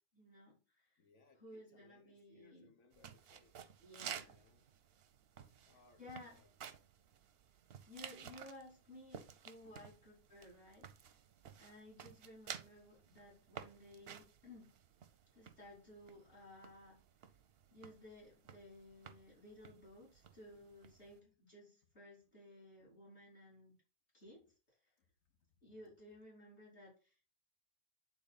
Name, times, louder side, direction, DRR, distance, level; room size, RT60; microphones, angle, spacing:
voice 1, 0.1-1.0 1.4-2.7 3.8-4.5 6.0-6.4 7.9-11.2 11.6-14.7 15.3-17.0 17.7-23.7 24.1-24.8 25.6-27.4, left 1 dB, 45° left, 3.2 m, -57 dB
voice 2, 1.0-3.6 4.3-4.8 5.4-6.5 9.6-9.8 25.0-25.4 25.6-26.0, left 4 dB, 80° left, 1.6 m, -69 dB
sound 1, 2.9-21.2, right 8 dB, 55° right, 0.7 m, -54 dB
8.7 x 3.7 x 3.9 m
omnidirectional pair, 1.4 m